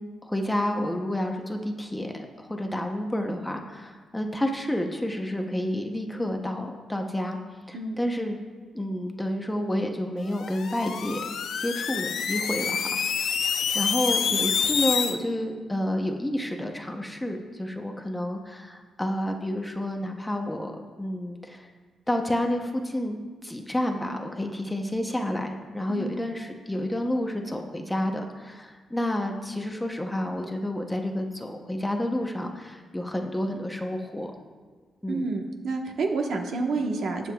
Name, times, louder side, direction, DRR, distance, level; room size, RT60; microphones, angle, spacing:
voice 1, 0.2-7.4 7.7-8.4 8.7-13.0 13.7-21.7 22.1-23.2 23.4-34.3 35.0-35.3, left 1 dB, 5° left, 3 dB, 0.7 m, -30 dB
sound 1, 10.3-15.2, left 7 dB, 65° left, 0.6 m, -27 dB
voice 2, 35.1-37.3, right 3 dB, 60° right, 2 dB, 1.1 m, -29 dB
20.0 x 7.7 x 2.3 m, 1.4 s
wide cardioid pair, 155°, 0 cm